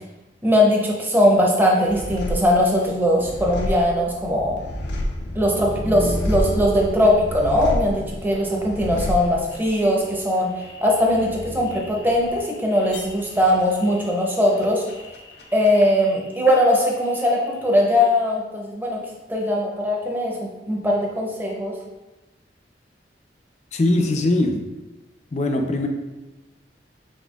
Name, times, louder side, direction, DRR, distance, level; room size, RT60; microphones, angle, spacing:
voice 1, 0.4-4.6 5.3-15.0 15.5-19.0 19.3-21.7, left 1 dB, 10° right, -2 dB, 0.7 m, -20 dB
sound 1, 1.9-16.8 17.0-17.8, left 1 dB, 85° left, 0.6 m, -31 dB
voice 2, 23.7-24.6 25.3-25.9, left 2 dB, 40° left, 4 dB, 0.4 m, -20 dB
4.3 x 4.1 x 2.3 m, 1.1 s
head